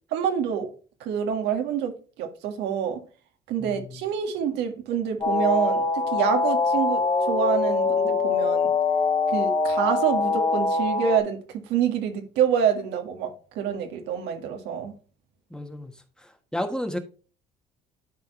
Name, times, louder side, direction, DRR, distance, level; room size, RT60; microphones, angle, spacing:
voice 1, 0.1-0.7 1.0-3.0 3.5-8.7 9.3-14.9, right 8 dB, 90° right, 1.7 m, -27 dB
voice 2, 3.6-4.0 15.5-15.9 16.5-17.0, left 1 dB, 5° left, 1.3 m, -31 dB
sound 1, 5.2-11.2, left 4 dB, 30° left, 1.8 m, -23 dB
12.0 x 4.5 x 3.1 m
cardioid pair, 110°, 17 cm